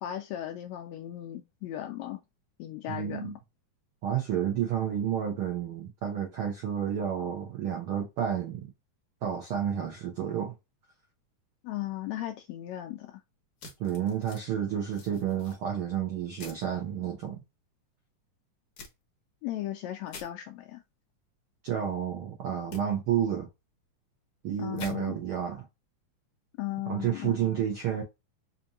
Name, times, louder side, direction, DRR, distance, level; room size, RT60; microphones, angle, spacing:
voice 1, 0.0-2.2 2.6-3.3 11.6-13.2 19.4-20.8 24.6-25.2 26.6-27.6, left 13 dB, 80° left, 1.6 m, -36 dB
voice 2, 2.9-3.4 4.0-8.7 9.2-10.6 13.8-17.4 21.6-23.5 24.4-25.7 26.9-28.0, right 9 dB, 85° right, 1.2 m, -30 dB
sound 1, 13.6-14.4 14.9-15.6 16.4-16.6 18.8-18.9 20.1-20.3 22.7-22.8 24.8-24.9, left 4 dB, 55° left, 1.8 m, -45 dB
5.1 x 2.7 x 2.6 m
omnidirectional pair, 3.6 m